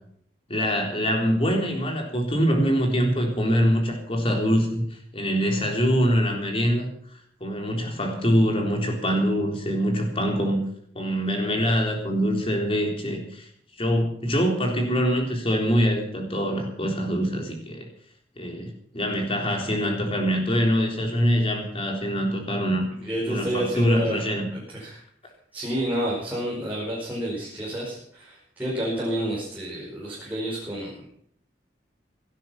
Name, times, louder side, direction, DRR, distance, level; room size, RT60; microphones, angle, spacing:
voice 1, 0.5-6.9 7.4-10.6 11.0-13.5 13.8-17.9 18.4-22.9 23.3-24.5, equal, 30° left, 2 dB, 3.8 m, -24 dB
voice 2, 23.0-25.0 25.5-31.0, right 1 dB, 10° right, -6 dB, 5.3 m, -30 dB
17.5 x 12.0 x 5.9 m, 0.65 s
head